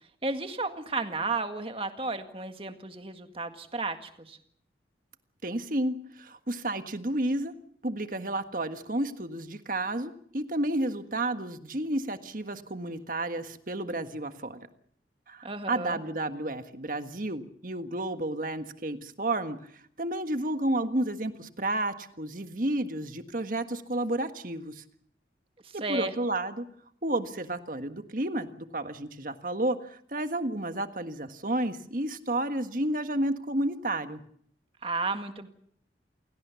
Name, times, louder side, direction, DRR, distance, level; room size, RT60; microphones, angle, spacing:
voice 1, 0.2-4.4 15.4-16.0 25.8-26.1 34.8-35.5, right 3 dB, 30° right, 7 dB, 1.9 m, -33 dB
voice 2, 5.4-7.5 7.8-14.6 15.3-24.8 25.7-26.7 27.0-34.2, right 1 dB, 45° right, 8 dB, 1.6 m, -31 dB
28.5 x 18.0 x 7.0 m, 0.65 s
head